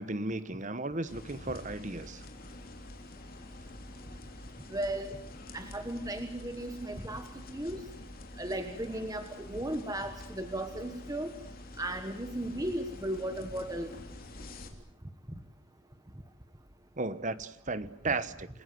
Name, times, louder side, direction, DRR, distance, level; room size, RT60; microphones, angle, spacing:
voice 1, 0.0-2.2 17.0-18.5, right 3 dB, 35° right, 14 dB, 1.1 m, -35 dB
sound 1, 1.1-14.7, left 1 dB, 40° left, 3.2 m, -47 dB
voice 2, 4.7-5.2 5.5-7.8 8.4-11.3 11.8-13.9, right 1 dB, 15° right, 7 dB, 1.4 m, -36 dB
29.5 x 21.0 x 7.8 m, 0.75 s
head